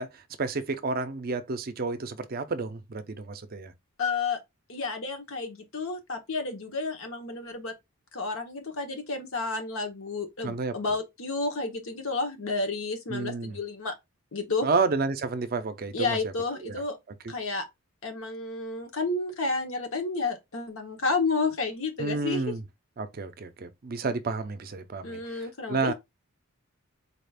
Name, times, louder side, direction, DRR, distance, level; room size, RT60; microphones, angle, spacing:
voice 1, 0.0-3.7 10.4-10.7 13.1-13.6 14.6-16.2 16.6-16.8 22.0-22.6 23.0-25.9, right 3 dB, 45° right, 0.5 m, -30 dB
voice 2, 4.0-4.4 4.7-7.7 8.1-13.9 14.3-14.7 15.9-17.0 17.3-17.6 18.0-22.4 25.0-25.9, left 3 dB, 70° left, 1.1 m, -31 dB
4.1 x 2.4 x 3.3 m
head